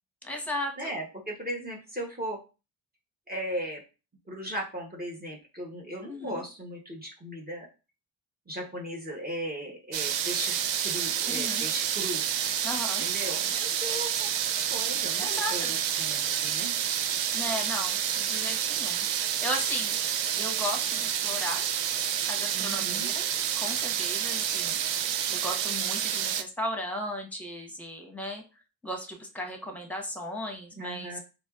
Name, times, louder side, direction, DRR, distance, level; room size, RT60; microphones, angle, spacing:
voice 1, 0.2-1.0 6.1-6.3 11.3-11.7 12.6-13.0 15.2-15.7 17.3-20.0 20.3-21.6 22.3-23.2 23.5-24.9 25.3-28.4 28.8-31.2, left 1 dB, 5° left, 2 dB, 1.0 m, -36 dB
voice 2, 0.8-2.4 3.3-3.8 4.3-7.7 8.5-12.2 13.0-14.4 14.7-16.7 22.5-23.1 30.8-31.2, equal, 20° right, 0 dB, 1.0 m, -37 dB
sound 1, 9.9-26.4, right 9 dB, 75° right, 0.5 m, -29 dB
4.3 x 2.9 x 2.4 m, 0.31 s
cardioid pair, 85°, 44 cm